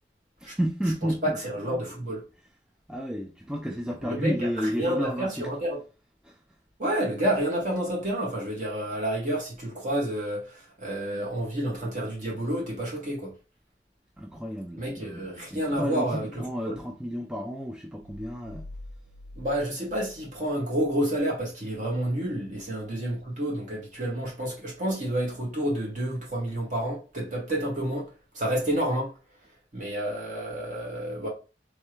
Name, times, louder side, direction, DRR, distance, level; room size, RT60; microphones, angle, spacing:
voice 1, 0.4-1.4 2.9-5.5 6.2-6.4 14.2-18.7, equal, 5° right, 0.3 m, -32 dB
voice 2, 1.2-2.2 4.0-5.8 6.8-13.3 14.8-16.8 19.4-28.1 28.3-29.1 29.7-31.3, right 1 dB, 45° right, 1.8 m, -29 dB
sound 1, 18.0-20.9, left 1 dB, 90° right, 0.6 m, -46 dB
3.4 x 3.2 x 3.1 m
head